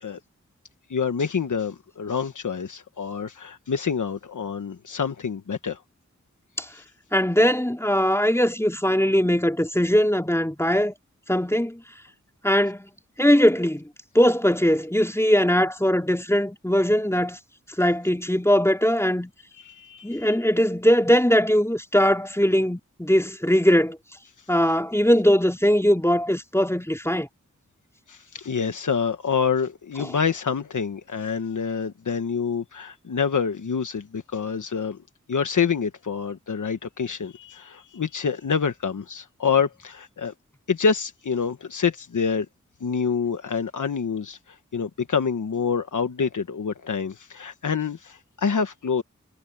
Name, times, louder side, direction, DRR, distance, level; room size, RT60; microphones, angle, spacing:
voice 1, 0.9-5.8 6.7-6.8 19.6-20.3 28.1-35.0 35.3-40.3 40.7-42.5 42.8-44.4 44.7-49.0, left 6 dB, 85° left, 1.3 m, -27 dB
voice 2, 7.1-10.9 11.3-11.8 12.4-12.9 13.2-13.9 14.2-17.4 17.8-19.3 20.0-24.0 24.5-27.3 30.0-30.2, equal, 10° left, 3.4 m, -20 dB
cardioid pair, 50°, 30 cm